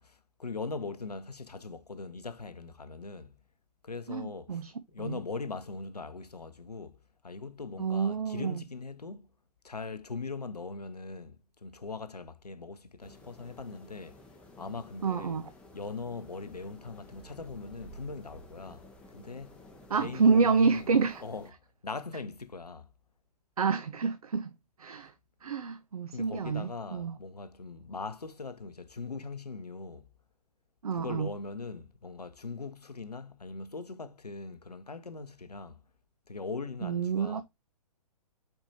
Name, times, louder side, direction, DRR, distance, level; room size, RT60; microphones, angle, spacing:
voice 1, 0.0-3.4 3.8-7.0 7.2-9.3 9.6-14.2 14.6-15.4 15.7-19.7 20.0-20.9 21.2-21.5 21.8-22.9 26.1-30.1 30.9-35.8 36.3-37.4, left 4 dB, 85° left, 0.7 m, -41 dB
voice 2, 4.1-4.7 5.0-5.2 7.8-8.6 15.0-15.4 19.9-21.2 23.6-24.5 24.8-25.1 25.4-27.2 30.8-31.3 36.8-37.4, right 5 dB, 70° right, 0.6 m, -28 dB
sound 1, 13.0-21.5, left 1 dB, 5° left, 0.7 m, -53 dB
4.4 x 4.4 x 2.7 m
figure-of-eight pair, 120°, 20 cm